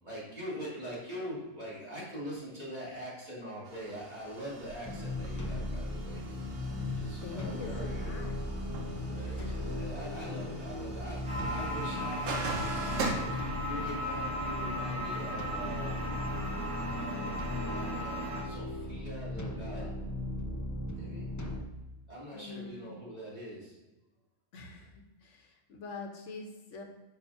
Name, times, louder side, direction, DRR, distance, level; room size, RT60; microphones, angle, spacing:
voice 1, 0.0-6.2 7.0-8.1 9.0-16.1 16.9-17.4 17.7-20.0 21.0-21.3 22.1-23.8, equal, 30° right, -7 dB, 2.7 m, -43 dB
sound 1, 3.7-13.1, right 3 dB, 90° right, 1.3 m, -42 dB
sound 2, 4.8-21.6, left 1 dB, 20° left, 0.5 m, -37 dB
voice 2, 7.2-8.4 9.0-9.7 22.3-23.0 24.5-24.9 25.2-26.8, left 3 dB, 75° left, 3 dB, 1.3 m, -45 dB
sound 3, 11.3-18.4, equal, 60° right, 1.9 m, -37 dB
8.9 x 6.1 x 2.8 m, 1.1 s
omnidirectional pair, 1.3 m